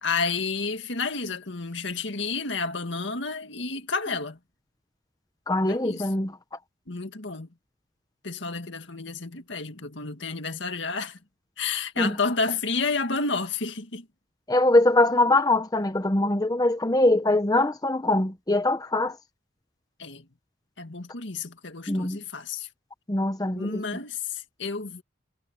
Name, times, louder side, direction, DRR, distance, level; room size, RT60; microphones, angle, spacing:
voice 1, 0.0-4.4 5.7-6.1 6.9-7.5 8.2-11.2 11.6-14.1 20.0-20.3 20.8-22.7 23.6-25.0, left 4 dB, 70° left, 2.0 m, -30 dB
voice 2, 5.5-6.3 12.0-12.2 14.5-19.2 21.9-22.2 23.1-23.8, left 2 dB, 20° left, 0.9 m, -22 dB
head